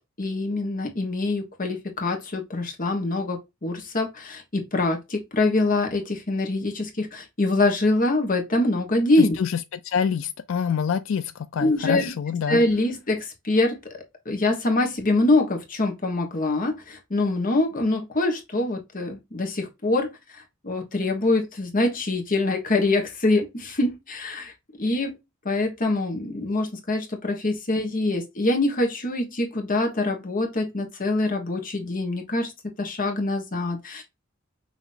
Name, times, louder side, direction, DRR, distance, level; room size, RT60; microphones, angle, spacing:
voice 1, 0.2-9.4 11.6-12.2 12.5-13.8 14.2-20.1 20.6-24.5 24.8-25.2 25.4-32.5 32.8-34.0, left 2 dB, 45° left, 1.4 m, -24 dB
voice 2, 9.2-12.6, left 7 dB, 70° left, 0.4 m, -27 dB
5.9 x 3.0 x 2.7 m
head